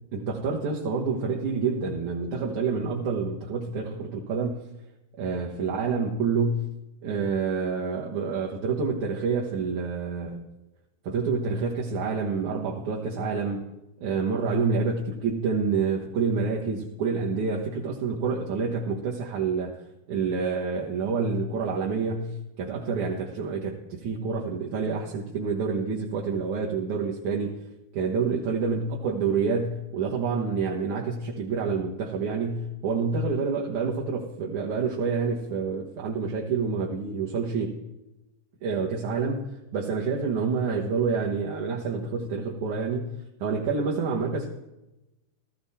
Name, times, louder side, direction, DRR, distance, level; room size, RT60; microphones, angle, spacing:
voice 1, 0.1-4.6 5.2-6.7 7.0-10.5 11.0-13.6 14.0-19.8 20.1-27.6 27.9-37.8 38.6-44.5, right 5 dB, 60° right, -2 dB, 2.3 m, -28 dB
16.0 x 14.5 x 4.3 m, 0.95 s
omnidirectional pair, 4.6 m